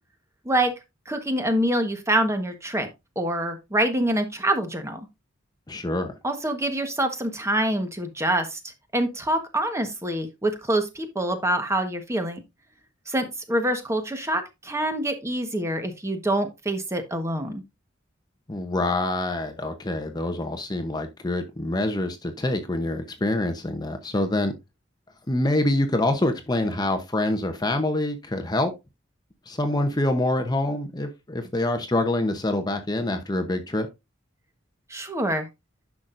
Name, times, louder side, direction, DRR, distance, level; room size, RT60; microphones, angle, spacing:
voice 1, 1.1-2.9 3.1-5.1 6.2-8.6 8.9-12.4 13.1-17.6 34.9-35.5, right 1 dB, 15° right, 1.2 m, -25 dB
voice 2, 5.7-6.2 18.5-24.5 25.3-28.7 29.5-33.9, left 1 dB, 20° left, 0.8 m, -26 dB
10.5 x 5.9 x 2.5 m
head